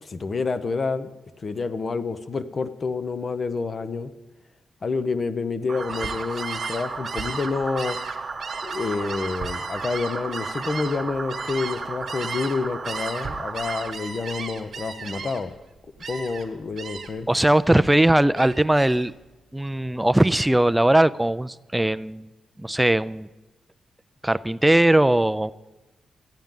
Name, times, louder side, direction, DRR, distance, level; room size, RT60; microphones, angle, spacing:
voice 1, 0.0-1.1 1.4-4.1 4.8-8.0 8.6-15.5 16.1-17.3, left 4 dB, 50° left, 11 dB, 0.7 m, -28 dB
sound 1, 5.7-13.9, right 4 dB, 45° right, 0.8 m, -34 dB
Gull seagull, 5.8-12.6 12.8-15.6 16.0-16.5 16.8-17.2 17.6-19.1, right 5 dB, 65° right, 1.2 m, -36 dB
voice 2, 17.3-19.1 19.5-22.3 22.6-23.3 24.2-25.5, right 1 dB, 10° right, 15 dB, 0.3 m, -19 dB
14.5 x 9.1 x 3.7 m, 1.1 s
supercardioid pair, 55°, 0 cm